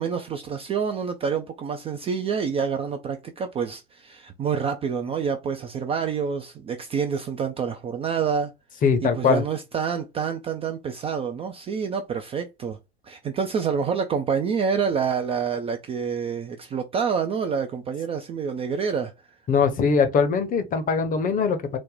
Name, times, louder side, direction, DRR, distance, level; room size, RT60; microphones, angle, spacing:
voice 1, 0.0-8.5 9.0-12.8 13.0-19.1, right 6 dB, 20° right, 0.4 m, -27 dB
voice 2, 8.8-9.4 19.5-21.8, left 5 dB, 25° left, 0.7 m, -21 dB
3.9 x 2.1 x 3.2 m
figure-of-eight pair, 80°, 31 cm